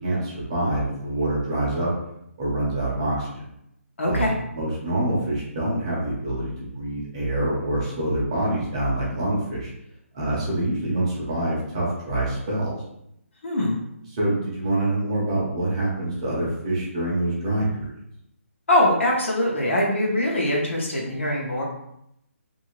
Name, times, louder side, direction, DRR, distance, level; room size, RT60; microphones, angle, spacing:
voice 1, 0.0-1.9 2.4-3.3 4.1-9.7 10.1-12.7 14.1-17.9, right 1 dB, 25° right, -6 dB, 0.8 m, -26 dB
voice 2, 4.0-4.4 13.4-13.8 18.7-21.6, left 1 dB, 55° left, -2 dB, 0.9 m, -22 dB
2.8 x 2.7 x 2.9 m, 0.79 s
hypercardioid pair, 175°, 8 cm